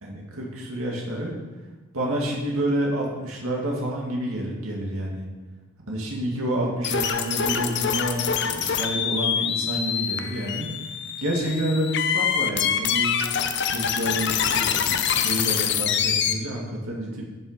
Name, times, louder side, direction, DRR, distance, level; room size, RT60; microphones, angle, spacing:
voice 1, 0.0-1.3 1.9-5.3 5.9-10.7 11.2-13.1 13.7-17.3, right 1 dB, 85° right, -2 dB, 2.3 m, -29 dB
sound 1, 6.8-16.3, left 8 dB, 55° left, 0.7 m, -25 dB
11.0 x 6.8 x 5.2 m, 1.3 s
head